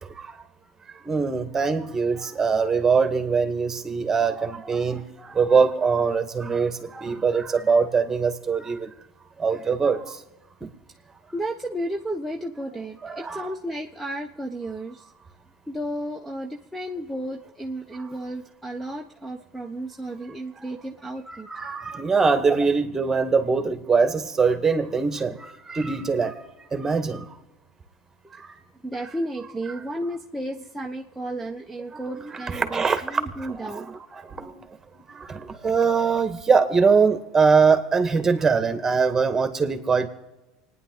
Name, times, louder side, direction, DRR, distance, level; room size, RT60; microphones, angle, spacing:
voice 1, 0.0-0.4 1.0-8.9 9.4-10.2 10.6-10.7 13.0-13.5 18.0-18.1 21.3-26.4 26.7-27.3 28.4-28.5 32.4-34.7 35.1-40.1, right 5 dB, 20° right, 8 dB, 2.0 m, -23 dB
voice 2, 11.3-15.1 15.7-21.5 22.5-22.6 26.7-26.9 28.3-28.4 28.8-33.9, right 1 dB, ahead, -1 dB, 1.2 m, -33 dB
28.5 x 10.0 x 4.1 m, 1.0 s
hypercardioid pair, 75°, 2 cm